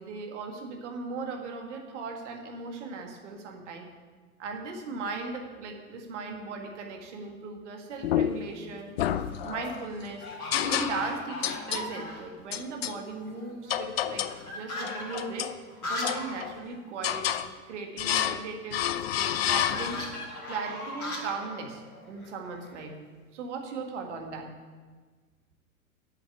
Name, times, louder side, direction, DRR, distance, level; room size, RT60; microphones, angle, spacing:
voice 1, 0.0-3.9 4.4-8.9 9.4-10.3 10.6-15.5 15.8-17.4 17.7-20.0 20.5-23.0 23.3-24.5, right 4 dB, 50° right, 3 dB, 1.8 m, -38 dB
sound 1, 7.9-8.3 8.9-9.3 9.6-9.7 10.2-12.4 12.7-12.8 13.0-16.4 16.7-16.8 17.1-17.2 19.1-22.9, left 1 dB, 80° left, 2.4 m, -38 dB
sound 2, 8.0-8.6 9.0-9.9 10.5-11.2 11.4-11.9 12.5-13.0 13.7-14.4 14.8-15.6 16.0-16.6 17.0-17.5 18.0-18.4 18.7-20.2, left 11 dB, 45° left, 0.5 m, -29 dB
7.8 x 7.0 x 8.2 m, 1.4 s
figure-of-eight pair, 100°, 44 cm